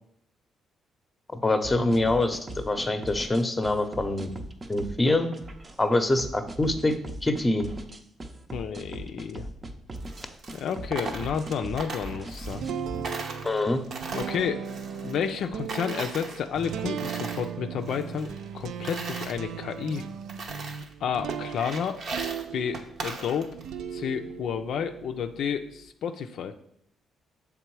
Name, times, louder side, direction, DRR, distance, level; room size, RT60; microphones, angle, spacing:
voice 1, 1.4-4.3 4.7-5.3 5.8-6.9 7.2-7.7 13.4-13.8, left 2 dB, 20° left, 8 dB, 0.7 m, -24 dB
sound 1, 1.6-13.0, right 1 dB, 30° right, 0.6 m, -39 dB
voice 2, 8.5-9.5 10.5-12.6 14.1-14.7 15.0-20.0 21.0-22.0 22.5-23.6 23.9-26.5, left 7 dB, 70° left, 6 dB, 0.4 m, -31 dB
Coin (dropping), 10.0-12.8 13.0-15.4 15.7-17.5 17.8-19.3 19.9-20.0 20.3-20.9 21.3-23.7, right 3 dB, 60° right, 0.8 m, -38 dB
sound 2, 12.5-23.1 23.5-25.8, right 8 dB, 80° right, 0.3 m, -37 dB
6.7 x 3.5 x 4.6 m, 0.72 s
cardioid pair, 90°, 0 cm